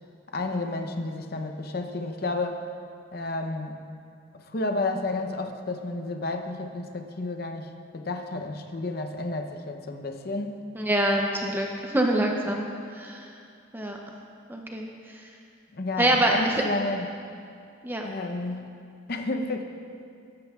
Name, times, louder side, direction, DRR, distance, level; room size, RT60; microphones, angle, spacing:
voice 1, 0.3-2.6 3.1-3.8 4.3-10.6 15.7-17.1 18.0-18.7 19.1-19.6, left 2 dB, 45° left, 5 dB, 0.6 m, -31 dB
voice 2, 10.8-11.7 11.9-12.7 12.9-13.2 13.7-14.0 14.5-14.9 16.0-16.3 17.8-18.1, right 1 dB, 10° right, 1 dB, 0.5 m, -24 dB
13.5 x 12.0 x 2.3 m, 2.4 s
head